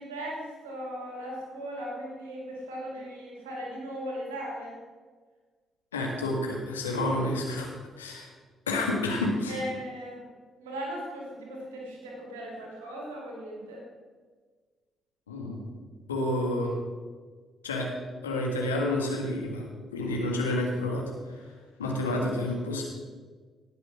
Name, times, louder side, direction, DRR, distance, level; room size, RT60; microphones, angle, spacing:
voice 1, 0.0-4.8 9.5-10.2 10.6-13.8, equal, 75° right, -1 dB, 2.7 m, -38 dB
voice 2, 5.9-7.7 8.0-8.3 8.7-9.6 15.3-15.7 16.1-16.7 17.6-17.9 18.2-19.7 19.9-21.4 21.8-22.8, left 1 dB, 80° left, -1 dB, 1.8 m, -29 dB
18.0 x 6.9 x 6.0 m, 1.5 s
figure-of-eight pair, 40°, 0 cm